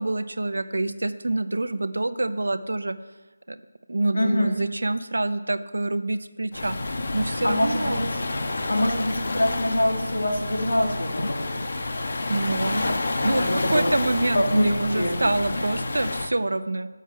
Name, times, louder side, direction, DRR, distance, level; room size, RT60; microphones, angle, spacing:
voice 1, 0.0-2.9 3.5-3.6 3.9-8.1 12.3-12.9 13.2-16.9, right 2 dB, 75° right, 11 dB, 1.0 m, -26 dB
voice 2, 4.1-4.6 7.4-8.0 8.7-11.5 13.3-15.2, left 1 dB, 80° left, 0 dB, 3.2 m, -25 dB
Waves surf, 6.5-16.3, left 2 dB, 50° left, 1.4 m, -29 dB
12.0 x 7.1 x 8.6 m, 1.3 s
figure-of-eight pair, 170°, 0 cm